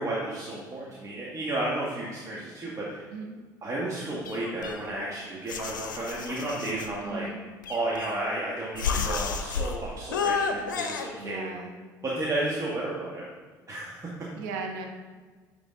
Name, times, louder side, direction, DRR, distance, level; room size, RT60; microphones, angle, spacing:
voice 1, 0.0-3.1 3.6-7.3 7.7-11.5 12.0-13.2 13.7-14.1, right 1 dB, 30° right, -5 dB, 1.5 m, -32 dB
sound 1, 4.2-5.1 5.5-6.9 7.6-8.4 8.8-9.7 10.1-11.1, left 5 dB, 85° left, 0.5 m, -31 dB
voice 2, 7.0-7.4 11.2-11.7 14.3-14.9, right 3 dB, 75° right, 2 dB, 0.9 m, -36 dB
9.2 x 4.0 x 3.7 m, 1.4 s
hypercardioid pair, 60°, 10 cm